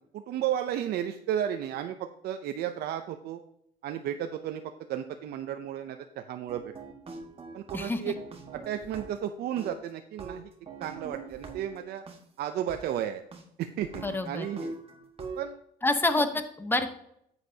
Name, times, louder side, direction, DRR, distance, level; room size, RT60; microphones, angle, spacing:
voice 1, 0.1-2.0 2.2-3.4 3.8-4.6 4.9-6.7 7.5-8.1 8.5-10.5 10.8-12.0 12.4-13.2 13.6-14.8 15.4-15.6, right 10 dB, 70° right, 7 dB, 0.6 m, -33 dB
sound 1, 6.5-9.3 9.6-12.2 12.7-12.8 13.3-13.4 13.8-15.4, right 4 dB, 35° right, 1.6 m, -43 dB
voice 2, 14.0-14.5 15.8-16.9, left 2 dB, 10° left, 8 dB, 1.0 m, -27 dB
10.0 x 8.1 x 2.8 m, 0.74 s
cardioid pair, 110°, 17 cm